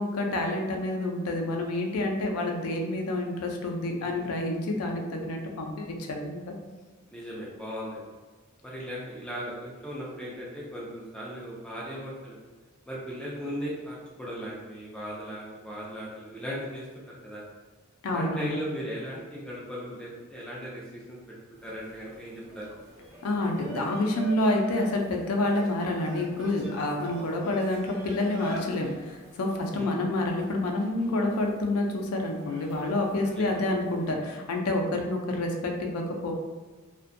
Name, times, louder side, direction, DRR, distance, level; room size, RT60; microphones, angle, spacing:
voice 1, 0.0-6.5 18.0-18.6 23.2-36.3, left 2 dB, 85° left, 1 dB, 0.4 m, -28 dB
voice 2, 7.1-8.1 8.6-12.4 12.9-17.4 18.1-21.2 21.6-22.7 27.4-27.5 29.7-29.9 33.3-33.4, equal, 5° left, -6 dB, 0.3 m, -37 dB
sound 1, 21.6-34.1, equal, 65° right, 0.8 m, -45 dB
2.5 x 2.1 x 2.5 m, 1.3 s
head